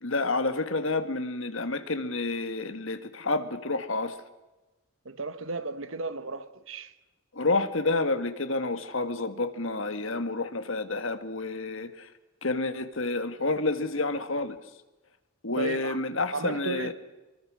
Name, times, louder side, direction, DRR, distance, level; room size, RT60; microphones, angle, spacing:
voice 1, 0.0-4.2 7.3-12.1 12.4-14.6 15.4-16.9, left 3 dB, 65° left, 1.8 m, -29 dB
voice 2, 5.0-6.9 15.5-16.0 16.3-16.9, right 3 dB, 70° right, 1.2 m, -34 dB
24.5 x 24.0 x 6.3 m
head